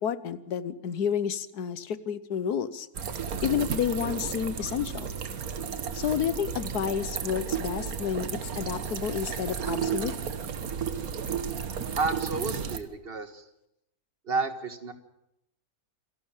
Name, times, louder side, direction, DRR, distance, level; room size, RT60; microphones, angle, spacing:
voice 1, 0.0-2.9 3.4-5.1 5.9-8.3 8.6-10.1, left 8 dB, 80° left, 15 dB, 1.5 m, -30 dB
sound 1, 2.9-12.8, right 7 dB, 65° right, 1.7 m, -33 dB
voice 2, 12.0-13.4 14.2-14.9, right 4 dB, 40° right, 9 dB, 1.7 m, -31 dB
27.0 x 12.0 x 9.0 m, 0.83 s
omnidirectional pair, 1.7 m